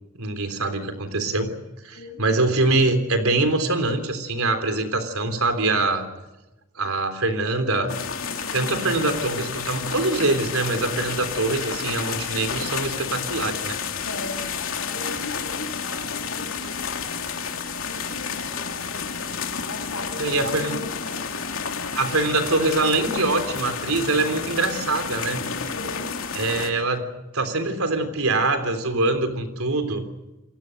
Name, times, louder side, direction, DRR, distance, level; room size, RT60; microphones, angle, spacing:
voice 1, 0.2-1.6 1.8-6.1 6.8-8.0 8.5-13.8 20.2-20.8 21.9-25.5 26.4-30.1, right 2 dB, 80° right, 8 dB, 3.5 m, -24 dB
sound 1, 7.9-26.7, left 6 dB, 70° left, 3.0 m, -30 dB
voice 2, 8.4-8.9 14.0-17.4 17.8-19.1 19.7-21.3 25.3-26.1, left 2 dB, 90° left, 4 dB, 7.0 m, -38 dB
28.5 x 22.5 x 6.6 m, 1.0 s
head